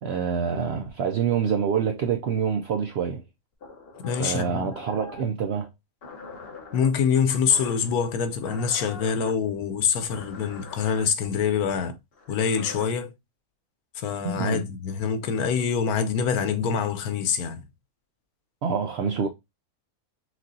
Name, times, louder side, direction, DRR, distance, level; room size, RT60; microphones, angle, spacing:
voice 1, 0.0-3.2 4.2-5.7 14.2-14.6 18.6-19.3, right 7 dB, 65° right, 0.6 m, -26 dB
sound 1, 3.6-5.3 6.0-6.9 7.5-7.9 8.4-9.3 10.1-11.0 12.1-12.9, left 4 dB, 45° left, 1.2 m, -42 dB
voice 2, 4.0-4.7 6.7-12.0 12.3-13.1 13.9-17.6, left 6 dB, 90° left, 1.2 m, -25 dB
6.1 x 2.5 x 2.6 m
omnidirectional pair, 1.5 m